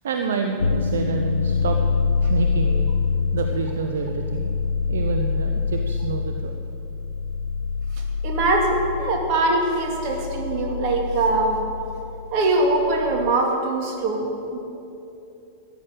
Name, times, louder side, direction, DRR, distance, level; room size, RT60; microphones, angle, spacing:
voice 1, 0.0-1.8 2.3-2.9 3.3-4.5 4.9-6.5, right 5 dB, 65° right, 5 dB, 0.8 m, -28 dB
sound 1, 0.6-13.3, left 5 dB, 75° left, 0.5 m, -26 dB
voice 2, 8.2-11.6 12.3-14.6, right 2 dB, 40° right, 1 dB, 2.4 m, -22 dB
13.5 x 10.0 x 6.6 m, 2.8 s
figure-of-eight pair, 90°, 0 cm